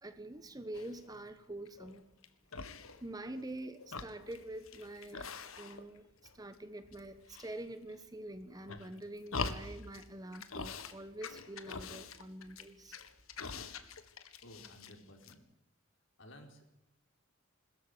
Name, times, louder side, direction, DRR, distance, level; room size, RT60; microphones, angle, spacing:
voice 1, 0.0-2.0 3.0-5.3 5.6-6.0 6.3-13.0, right 1 dB, 20° right, 10 dB, 1.2 m, -46 dB
sound 1, 0.7-1.2 1.7-2.3 2.5-3.5 3.8-6.0 6.2-7.0 7.3-8.0 8.5-10.0 10.3-10.9 11.2-15.0 15.2-15.3, left 4 dB, 85° left, 1.8 m, -44 dB
voice 2, 14.4-15.4 16.2-16.6, left 1 dB, 60° left, 4 dB, 4.6 m, -55 dB
22.0 x 14.0 x 9.9 m, 0.88 s
head